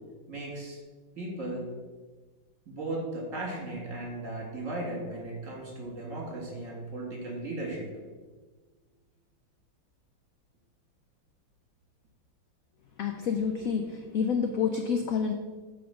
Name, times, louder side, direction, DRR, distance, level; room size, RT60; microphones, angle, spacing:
voice 1, 0.3-0.8 1.2-1.7 2.7-7.9, right 2 dB, 40° right, -2 dB, 2.4 m, -36 dB
voice 2, 13.0-15.3, left 6 dB, 75° left, 6 dB, 0.8 m, -28 dB
8.6 x 3.9 x 6.9 m, 1.4 s
omnidirectional pair, 2.1 m